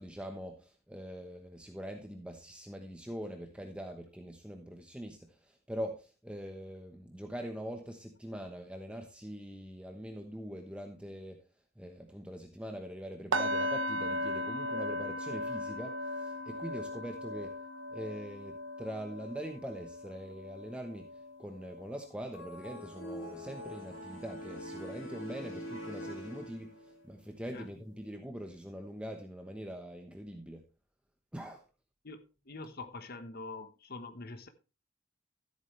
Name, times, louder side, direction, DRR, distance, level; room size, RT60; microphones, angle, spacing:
voice 1, 0.0-11.4 11.8-17.6 17.9-30.6 31.3-31.6, equal, 5° right, 1.0 m, -43 dB
sound 1, 13.3-23.2 23.6-23.9 24.3-24.4, equal, 70° right, 1.2 m, -38 dB
sound 2, 22.3-27.0, equal, 80° left, 4.5 m, -44 dB
voice 2, 32.0-34.5, left 3 dB, 50° left, 1.2 m, -44 dB
14.0 x 8.3 x 3.2 m
head